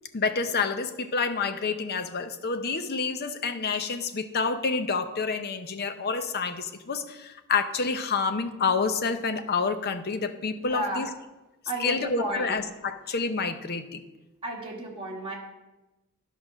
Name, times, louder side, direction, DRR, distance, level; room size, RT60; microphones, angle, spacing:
voice 1, 0.1-11.1 11.8-14.0, left 4 dB, 45° left, 8 dB, 0.7 m, -28 dB
voice 2, 10.5-11.1 11.7-12.6 14.4-15.4, right 1 dB, 25° right, -2 dB, 1.8 m, -33 dB
11.0 x 5.0 x 6.1 m, 1.1 s
head